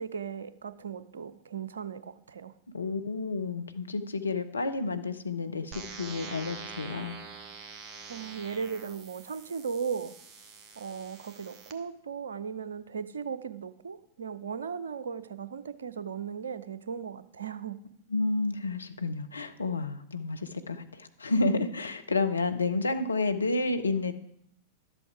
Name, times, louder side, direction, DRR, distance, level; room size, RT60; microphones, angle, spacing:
voice 1, 0.0-2.5 8.1-10.1 10.8-17.8, right 6 dB, 65° right, 13 dB, 0.6 m, -37 dB
voice 2, 2.7-7.2 18.1-24.1, left 3 dB, 75° left, 8 dB, 0.8 m, -30 dB
sound 1, 5.7-11.7, right 5 dB, 25° right, 1.3 m, -45 dB
12.0 x 7.8 x 4.8 m, 0.73 s
figure-of-eight pair, 95°, 0 cm